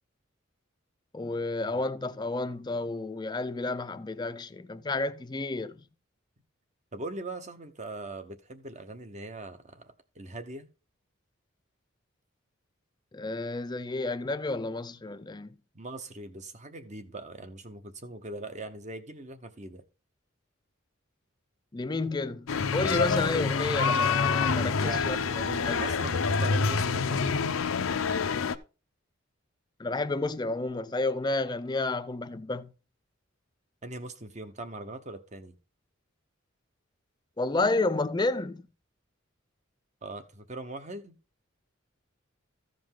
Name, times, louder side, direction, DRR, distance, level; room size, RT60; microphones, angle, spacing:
voice 1, 1.1-5.9 13.1-15.6 21.7-25.9 29.8-32.7 37.4-38.6, left 2 dB, 20° left, 0.5 m, -31 dB
voice 2, 6.9-10.7 15.7-19.8 24.8-27.5 33.8-35.6 40.0-41.1, right 2 dB, 35° right, 0.9 m, -41 dB
sound 1, 22.5-28.6, left 5 dB, 85° left, 0.6 m, -27 dB
14.5 x 5.1 x 3.7 m
head